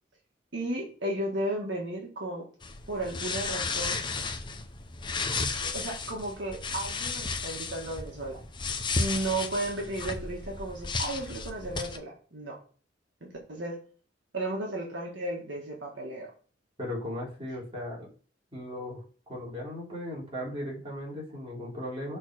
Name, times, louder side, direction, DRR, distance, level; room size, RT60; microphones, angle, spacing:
voice 1, 0.5-2.5 2.9-4.0 5.6-8.4 9.0-12.6 13.2-13.8 14.3-16.3, right 1 dB, 70° right, -1 dB, 1.8 m, -34 dB
sound 1, 2.6-12.0, left 4 dB, 25° left, 0.7 m, -34 dB
voice 2, 16.8-18.1 18.5-22.2, left 1 dB, 30° right, -4 dB, 3.2 m, -37 dB
6.4 x 4.2 x 6.1 m, 0.40 s
head